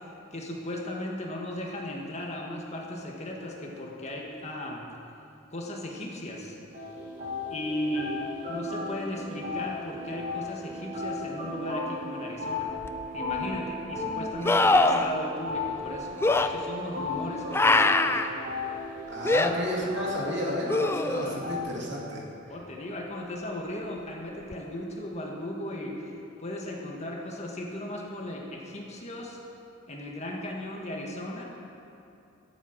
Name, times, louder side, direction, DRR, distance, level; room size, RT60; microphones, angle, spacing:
voice 1, 0.3-4.9 5.5-6.6 7.5-12.7 13.1-18.2 21.2-21.5 22.5-26.1 26.4-29.4 29.9-31.4, left 1 dB, 35° left, -1 dB, 1.7 m, -36 dB
sound 1, 6.7-21.6, left 3 dB, 40° right, 3.7 m, -35 dB
sound 2, 12.8-12.9 14.4-15.1 16.2-16.5 17.5-18.3 19.2-19.5 20.7-21.4 24.5-24.6, left 2 dB, 10° left, 0.4 m, -22 dB
voice 2, 19.1-22.3, equal, 65° right, -2 dB, 2.5 m, -32 dB
14.0 x 8.0 x 7.5 m, 2.7 s
head